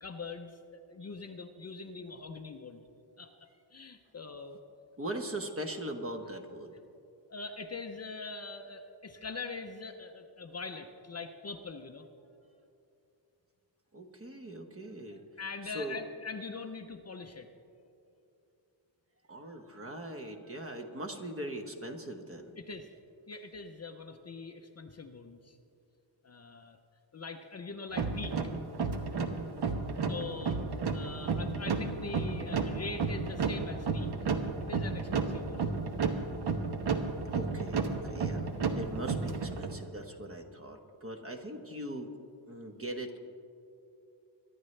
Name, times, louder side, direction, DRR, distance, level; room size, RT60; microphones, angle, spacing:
voice 1, 0.0-2.8 3.2-4.6 7.3-12.1 15.4-17.5 22.6-22.9 23.3-25.6 26.2-26.8 27.1-28.4 30.1-30.6 30.9-34.1 34.6-35.7, left 4 dB, 35° left, 6 dB, 0.6 m, -42 dB
voice 2, 5.0-6.7 13.9-15.2 15.6-16.0 19.3-22.6 37.2-42.1 42.5-43.2, right 1 dB, 30° right, 5 dB, 1.1 m, -40 dB
sound 1, 27.9-39.8, right 4 dB, 55° right, 1.1 m, -32 dB
24.0 x 11.0 x 3.3 m, 2.7 s
wide cardioid pair, 120°, 47 cm